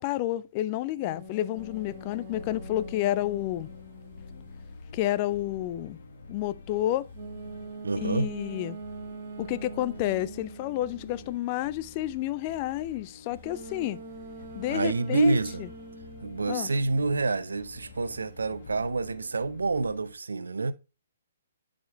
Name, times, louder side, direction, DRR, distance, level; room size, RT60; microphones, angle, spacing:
voice 1, 0.0-3.7 4.9-6.0 6.3-7.1 8.0-8.8 9.4-14.0 14.5-15.4 16.5-16.7, left 14 dB, 35° left, 0.5 m, -30 dB
sound 1, 1.0-4.8 7.1-11.5 13.4-17.2, right 2 dB, 45° right, 1.9 m, -43 dB
sound 2, 1.6-20.1, left 4 dB, 50° left, 1.3 m, -48 dB
voice 2, 7.8-8.3 14.7-15.6 16.2-20.7, right 3 dB, 70° right, 0.6 m, -27 dB
11.0 x 5.1 x 2.2 m
figure-of-eight pair, 125°, 0 cm